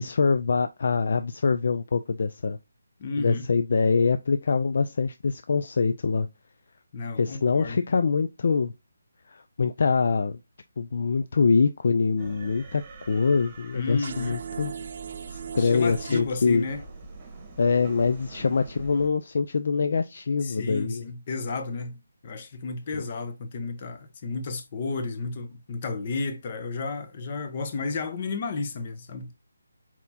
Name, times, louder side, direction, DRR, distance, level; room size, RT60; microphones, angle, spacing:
voice 1, 0.0-2.6 3.2-6.3 7.2-8.7 9.3-10.4 10.8-14.7 15.3-16.7 17.6-21.1 22.9-23.0, left 5 dB, 50° left, 0.3 m, -24 dB
voice 2, 3.0-3.4 6.9-7.8 13.7-14.4 15.6-16.8 20.4-29.3, left 3 dB, 30° left, 0.7 m, -32 dB
sound 1, 12.2-19.1, right 3 dB, 20° right, 1.3 m, -45 dB
sound 2, 14.0-16.2, right 7 dB, 45° right, 0.3 m, -37 dB
4.3 x 4.1 x 2.6 m
hypercardioid pair, 170°, 0 cm